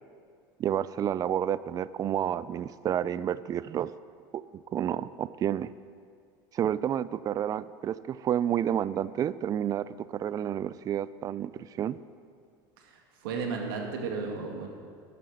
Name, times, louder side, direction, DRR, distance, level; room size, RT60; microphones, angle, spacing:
voice 1, 0.6-3.9 4.5-5.7 6.5-12.0, right 10 dB, 30° right, 17 dB, 0.4 m, -30 dB
voice 2, 13.2-14.7, right 4 dB, 80° right, 1 dB, 2.2 m, -33 dB
12.0 x 8.5 x 6.5 m, 2.2 s
hypercardioid pair, 95°, 11 cm